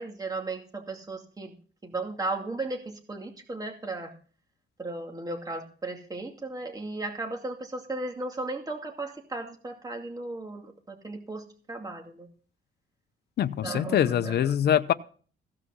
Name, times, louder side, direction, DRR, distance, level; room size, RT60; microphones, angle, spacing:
voice 1, 0.0-1.5 1.8-4.1 4.8-12.3 13.6-14.5, right 2 dB, 20° right, 2 dB, 2.4 m, -35 dB
voice 2, 13.4-14.9, left 10 dB, 55° left, 11 dB, 0.7 m, -24 dB
15.5 x 6.1 x 6.2 m, 0.42 s
cardioid pair, 90°, 20 cm